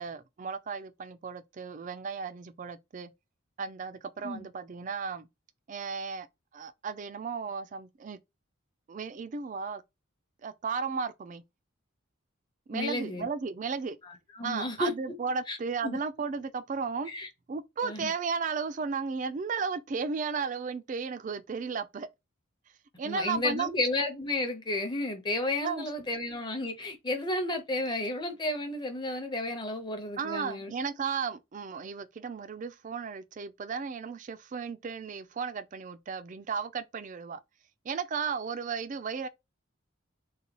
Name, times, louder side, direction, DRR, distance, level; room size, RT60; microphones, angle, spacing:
voice 1, 0.0-3.1 3.6-5.3 5.7-6.3 6.5-8.2 8.9-9.8 10.4-11.4 12.7-14.0 14.4-17.1 17.5-22.1 23.0-23.7 25.6-25.9 30.2-37.4 37.8-39.3, right 5 dB, 40° right, 0.3 m, -34 dB
voice 2, 12.7-13.3 14.0-14.9 15.5-15.6 15.8-16.0 17.1-17.3 17.8-18.1 23.0-30.7, left 2 dB, 20° left, 0.7 m, -32 dB
3.9 x 2.2 x 2.9 m
head